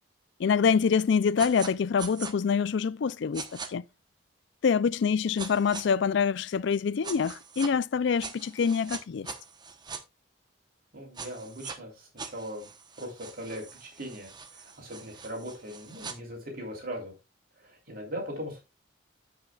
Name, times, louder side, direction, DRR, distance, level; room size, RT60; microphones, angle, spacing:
voice 1, 0.4-3.4 3.7-3.8 4.6-9.3, left 6 dB, 60° left, 0.4 m, -25 dB
sound 1, 1.4-1.7 2.0-2.3 3.3-3.7 5.4-5.8 7.0-7.7 8.2-10.0 11.2-11.8 12.2-16.2, right 5 dB, 20° right, 0.9 m, -42 dB
voice 2, 10.9-12.7 13.0-17.1 17.6-18.6, equal, 45° right, 3.1 m, -39 dB
16.0 x 5.7 x 2.3 m
head